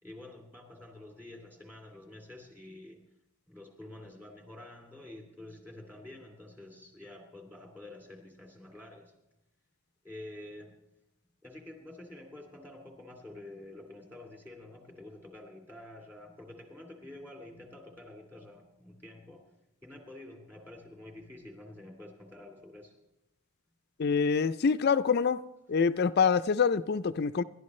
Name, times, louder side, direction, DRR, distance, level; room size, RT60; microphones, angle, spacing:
voice 1, 0.0-3.1 3.5-9.1 10.0-10.7 11.4-19.5 19.8-22.9, left 1 dB, 10° right, 2.7 m, -48 dB
voice 2, 24.0-25.4 25.7-27.4, left 5 dB, 45° left, 0.4 m, -26 dB
28.0 x 12.0 x 3.2 m
head